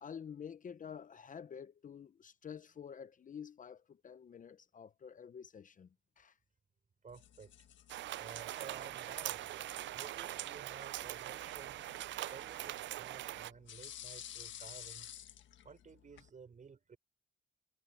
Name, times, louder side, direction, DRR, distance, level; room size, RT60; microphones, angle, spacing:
voice 1, 0.0-6.4, left 7 dB, 40° left, 0.8 m, -49 dB
voice 2, 7.0-7.5 8.1-9.5 9.9-11.8 12.3-15.1 15.6-17.0, right 5 dB, 40° right, 5.8 m, -54 dB
sound 1, 7.1-16.3, left 10 dB, 70° left, 1.6 m, -54 dB
sound 2, 7.9-13.5, right 14 dB, 70° right, 0.5 m, -42 dB
cardioid pair, 90°, 20 cm